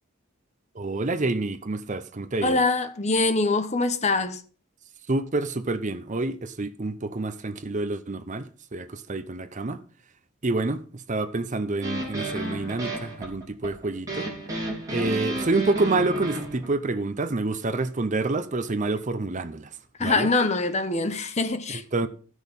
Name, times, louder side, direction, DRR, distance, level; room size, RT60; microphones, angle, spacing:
voice 1, 0.7-2.6 5.1-9.8 10.4-14.3 14.9-19.7 20.0-20.3 21.7-22.1, right 2 dB, 35° right, 0.7 m, -28 dB
voice 2, 2.4-4.4 20.0-21.8, left 3 dB, 30° left, 0.8 m, -24 dB
sound 1, 11.8-16.7, right 1 dB, 15° right, 3.5 m, -32 dB
14.0 x 6.3 x 5.3 m
head